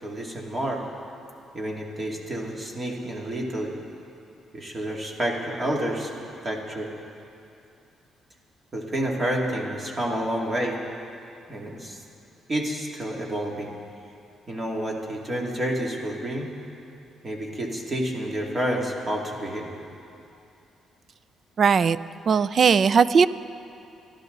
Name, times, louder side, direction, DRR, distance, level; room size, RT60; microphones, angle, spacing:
voice 1, 0.0-0.8 1.5-3.8 4.5-6.1 6.4-6.9 8.7-10.8 11.5-12.0 12.5-13.7 14.5-16.5 17.2-19.7, right 1 dB, 30° right, -1 dB, 2.7 m, -29 dB
voice 2, 21.6-22.0 22.3-23.3, right 6 dB, 50° right, 16 dB, 0.4 m, -18 dB
27.5 x 11.5 x 4.0 m, 2.7 s
cardioid pair, 90°, 0 cm